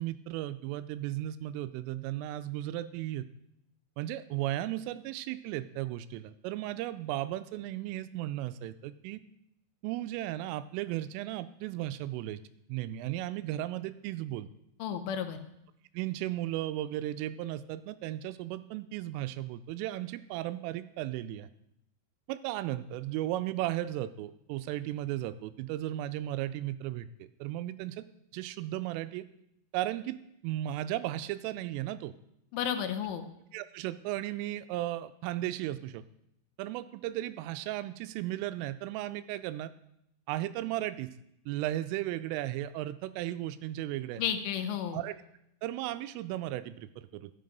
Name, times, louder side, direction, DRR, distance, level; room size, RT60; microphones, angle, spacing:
voice 1, 0.0-3.3 4.0-9.2 9.8-12.4 12.7-14.5 15.9-21.5 22.3-28.0 28.3-29.3 29.7-30.2 30.4-32.1 33.5-36.0 36.6-39.7 40.3-41.1 41.5-44.2 44.9-45.1 45.6-47.3, right 14 dB, 85° right, 13 dB, 3.1 m, -35 dB
voice 2, 14.8-15.4 32.5-33.2 44.2-45.0, left 9 dB, 80° left, 8 dB, 3.2 m, -32 dB
13.5 x 8.5 x 5.2 m, 0.79 s
omnidirectional pair, 5.8 m